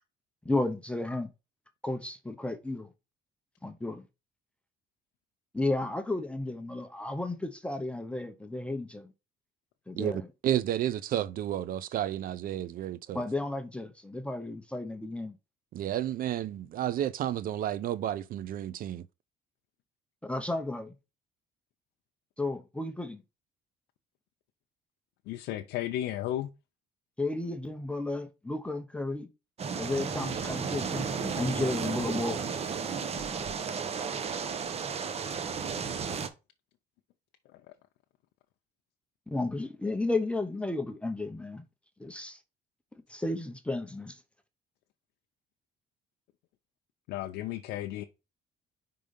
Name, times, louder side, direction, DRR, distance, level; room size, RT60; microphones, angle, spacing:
voice 1, 0.4-1.3 1.8-2.9 3.6-4.0 5.5-9.1 9.9-10.2 13.1-15.4 20.2-21.0 22.4-23.2 27.2-29.3 29.7-32.4 39.3-41.6 42.0-42.4 42.9-44.2, left 2 dB, 5° left, 0.7 m, -33 dB
voice 2, 10.0-13.2 15.7-19.0, right 11 dB, 55° right, 0.4 m, -31 dB
voice 3, 25.3-26.5 47.1-48.0, left 13 dB, 90° left, 0.6 m, -34 dB
sound 1, 29.6-36.3, right 6 dB, 40° right, 0.9 m, -33 dB
5.3 x 3.8 x 5.1 m
cardioid pair, 110°, 17 cm